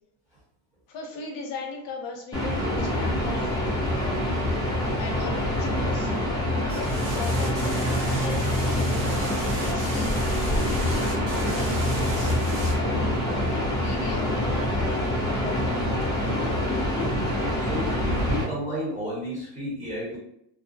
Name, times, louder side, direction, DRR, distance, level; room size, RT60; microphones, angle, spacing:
voice 1, 0.9-4.3 5.0-6.1 6.7-9.0 9.4-12.4 12.6-13.0 13.6-15.5, left 4 dB, 60° left, 1 dB, 0.7 m, -39 dB
sound 1, 2.3-18.4, left 1 dB, 10° left, 0.4 m, -25 dB
sound 2, 6.7-12.7, right 1 dB, 70° right, 1.2 m, -37 dB
voice 2, 17.6-20.2, equal, 15° right, -7 dB, 1.0 m, -32 dB
2.5 x 2.0 x 2.6 m, 0.74 s
cardioid pair, 150°, 47 cm